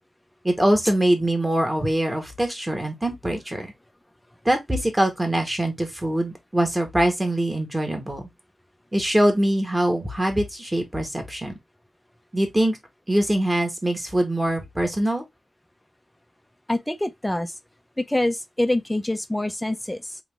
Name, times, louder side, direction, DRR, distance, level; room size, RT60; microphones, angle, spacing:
voice 1, 0.4-3.7 4.4-8.2 8.9-11.5 12.3-12.8 13.1-15.2, right 1 dB, 15° right, 1.5 m, -23 dB
voice 2, 16.7-17.5 18.0-20.2, left 1 dB, 10° left, 0.6 m, -25 dB
3.9 x 3.1 x 3.5 m
cardioid pair, 75°, 0 cm